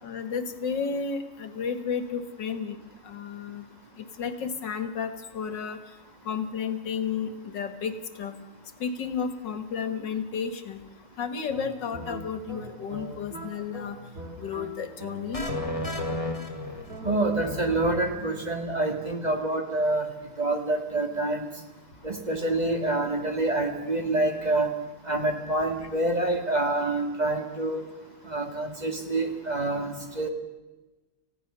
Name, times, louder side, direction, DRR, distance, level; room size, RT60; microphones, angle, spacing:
voice 1, 0.0-2.8 3.0-3.6 4.0-5.8 6.3-8.3 8.8-10.8 11.2-14.0 14.4-15.5, left 6 dB, 85° left, 10 dB, 2.3 m, -32 dB
sound 1, 11.5-16.5 16.9-18.4, right 1 dB, 50° right, 3.1 m, -41 dB
sound 2, 15.3-17.3, left 1 dB, 20° left, 2.5 m, -32 dB
voice 2, 17.0-20.1 20.4-21.5 22.0-24.7 25.1-27.9 28.3-30.3, right 2 dB, 25° right, 5 dB, 2.1 m, -27 dB
29.0 x 16.0 x 6.9 m, 1.1 s
omnidirectional pair, 1.9 m